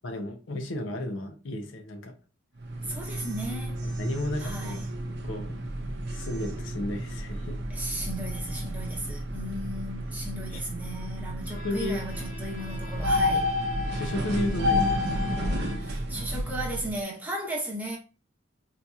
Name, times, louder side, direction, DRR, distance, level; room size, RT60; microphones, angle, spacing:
voice 1, 0.0-2.1 3.8-4.8 5.2-5.6 6.1-7.6 10.5-10.6 11.6-12.0 13.4-15.1, left 1 dB, 65° left, 0.6 m, -33 dB
sound 1, 2.6-17.0, left 1 dB, 55° right, 0.6 m, -31 dB
voice 2, 2.8-3.8 4.4-4.9 7.7-13.5 15.7-18.0, right 1 dB, 10° right, 0.8 m, -36 dB
sound 2, 5.6-16.9, right 1 dB, 80° right, 0.8 m, -39 dB
Bowed string instrument, 11.4-16.1, left 1 dB, 40° left, 1.1 m, -46 dB
4.0 x 2.8 x 2.3 m
head